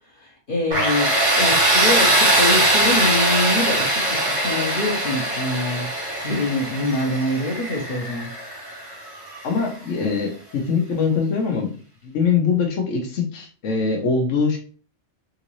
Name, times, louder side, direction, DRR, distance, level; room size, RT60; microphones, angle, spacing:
voice 1, 0.2-1.1 1.4-5.9 6.2-8.3, left 1 dB, 45° left, -1 dB, 1.1 m, -25 dB
Tools, 0.7-9.5, right 1 dB, 75° right, 1.5 m, -21 dB
voice 2, 9.4-11.7 12.0-14.6, left 5 dB, 70° left, 1 dB, 1.2 m, -22 dB
3.8 x 2.6 x 3.0 m, 0.39 s
omnidirectional pair, 1.3 m